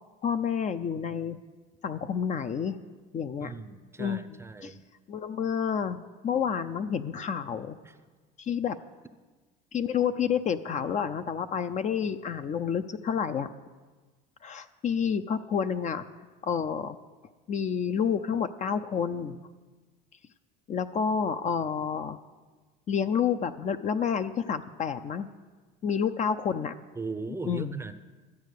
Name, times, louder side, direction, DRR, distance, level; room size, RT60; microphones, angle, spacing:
voice 1, 0.2-1.4 1.8-2.8 3.1-3.5 4.0-4.8 5.1-7.8 8.4-8.8 9.7-13.5 14.4-16.1 16.4-17.0 17.5-19.4 20.7-22.2 22.9-25.3 25.8-26.8 27.4-27.8, left 7 dB, 40° left, 10 dB, 0.5 m, -29 dB
voice 2, 3.4-4.8 7.8-8.0 27.0-27.9, right 3 dB, 15° right, 11 dB, 0.6 m, -38 dB
12.5 x 8.2 x 6.6 m, 1.3 s
supercardioid pair, 105°, 19 cm